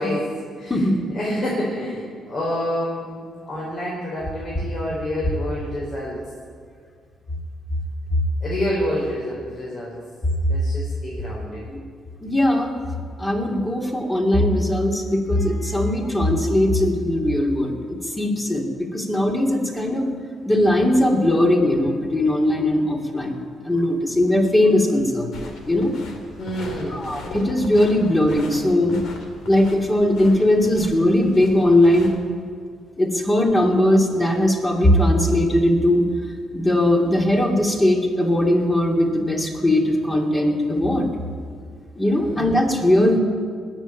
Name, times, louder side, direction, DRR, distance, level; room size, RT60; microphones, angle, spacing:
voice 1, 0.0-0.8 1.1-6.2 8.4-10.0 10.5-11.6 26.4-27.1 42.2-42.5, equal, 45° left, -5 dB, 4.6 m, -28 dB
voice 2, 12.2-12.7 13.2-20.1 20.4-25.4 25.7-25.9 26.9-29.0 29.5-32.2 33.0-36.1 36.5-41.1 42.0-43.2, left 1 dB, 15° left, 1 dB, 2.8 m, -19 dB
sound 1, 25.3-32.2, left 2 dB, 75° left, 2.7 m, -38 dB
20.0 x 7.3 x 9.3 m, 2.1 s
cardioid pair, 90°, 0 cm